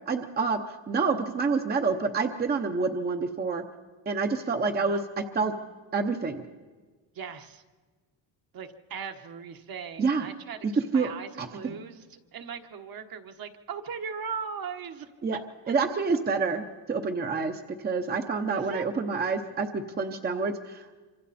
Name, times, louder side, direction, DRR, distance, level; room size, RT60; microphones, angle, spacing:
voice 1, 0.1-3.6 4.1-5.0 5.3-5.5 5.9-6.4 10.0-10.3 10.9-11.1 11.4-11.8 15.2-15.4 15.7-20.9, right 4 dB, 20° right, 6 dB, 0.9 m, -28 dB
voice 2, 4.6-5.0 7.1-7.6 8.5-15.4 15.6-15.7 18.5-18.8, right 6 dB, 50° right, 6 dB, 1.4 m, -39 dB
26.0 x 26.0 x 4.3 m, 1.4 s
cardioid pair, 170°, 44 cm